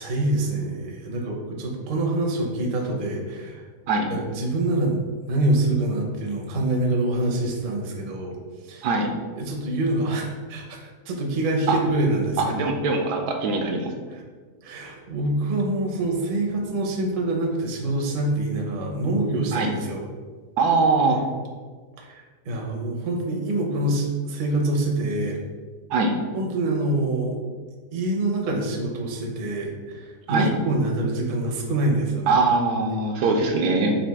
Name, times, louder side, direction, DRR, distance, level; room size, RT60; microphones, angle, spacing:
voice 1, 0.0-3.7 4.1-5.0 5.3-8.4 8.6-8.9 9.4-12.8 14.1-14.2 14.6-20.1 22.0-25.4 26.3-27.4 27.9-32.4, right 2 dB, 50° right, 0 dB, 0.6 m, -25 dB
voice 2, 12.4-13.9 19.5-19.7 20.6-21.2 25.9-26.1 30.3-30.6 32.3-34.0, right 3 dB, 80° right, 3 dB, 1.1 m, -22 dB
4.1 x 2.5 x 4.6 m, 1.5 s
omnidirectional pair, 1.7 m